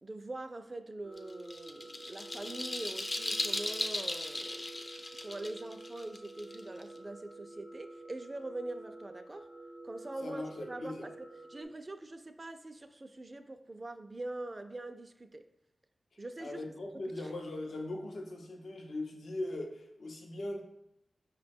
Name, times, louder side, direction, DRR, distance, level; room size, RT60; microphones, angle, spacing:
voice 1, 0.0-4.7 5.2-9.5 9.8-15.4 16.2-16.6 16.9-17.3, right 2 dB, 35° right, 0.3 m, -43 dB
sound 1, 1.0-11.6, right 2 dB, 55° left, 0.9 m, -50 dB
sound 2, 1.2-7.0, left 2 dB, 40° left, 0.4 m, -37 dB
voice 2, 10.2-11.1 16.4-20.6, left 2 dB, 80° left, 0.6 m, -40 dB
5.1 x 2.2 x 4.2 m
wide cardioid pair, 70°, 0 cm